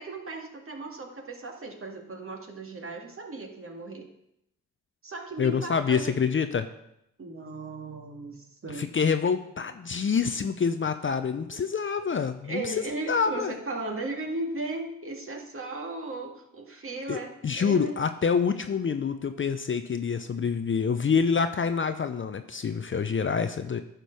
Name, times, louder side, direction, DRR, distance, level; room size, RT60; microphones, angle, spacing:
voice 1, 0.0-4.1 5.0-6.1 7.2-8.9 11.5-11.6 11.9-12.1 12.4-18.0, right 2 dB, 40° right, 2 dB, 2.1 m, -36 dB
voice 2, 5.4-6.7 8.8-12.7 13.1-13.5 17.1-23.8, left 6 dB, 35° left, 9 dB, 0.6 m, -27 dB
10.0 x 5.3 x 6.3 m, 0.81 s
supercardioid pair, 60°, 35 cm